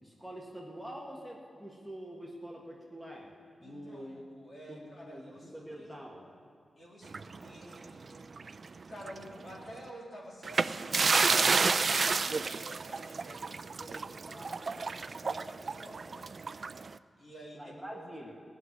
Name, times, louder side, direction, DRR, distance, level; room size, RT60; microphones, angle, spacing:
voice 1, 0.0-4.2 4.7-6.2 13.8-14.1 17.5-18.3, equal, 5° left, -2 dB, 1.6 m, -46 dB
voice 2, 3.6-6.0 6.8-8.2 8.9-16.3 17.2-18.0, equal, 50° left, -4 dB, 3.4 m, -50 dB
sound 1, 7.1-8.7 9.0-9.2 10.4-16.9, right 4 dB, 50° right, 0.3 m, -30 dB
18.0 x 6.3 x 9.5 m, 2.5 s
wide cardioid pair, 100°, 0 cm